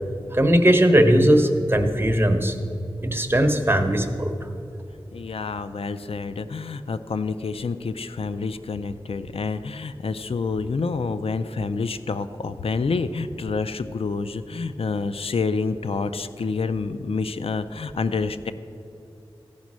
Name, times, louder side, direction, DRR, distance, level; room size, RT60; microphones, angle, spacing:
voice 1, 0.3-2.5 3.0-4.3, equal, 25° right, 5 dB, 0.9 m, -18 dB
voice 2, 5.1-18.5, left 4 dB, 75° left, 11 dB, 0.4 m, -28 dB
15.0 x 5.2 x 6.1 m, 2.6 s
wide cardioid pair, 55°, 10 cm